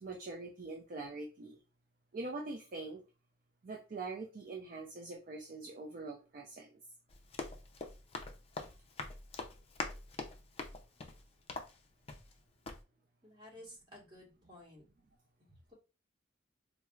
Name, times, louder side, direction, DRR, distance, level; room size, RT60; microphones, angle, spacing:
voice 1, 0.0-1.6 2.1-3.0 3.6-6.7, right 3 dB, 50° right, 0 dB, 0.4 m, -43 dB
Run, 7.1-12.4 12.6-12.8, left 3 dB, 30° left, 0.4 m, -44 dB
voice 2, 13.2-14.8 15.7-15.8, left 1 dB, 25° right, -4 dB, 1.4 m, -54 dB
4.3 x 2.0 x 2.3 m, 0.31 s
head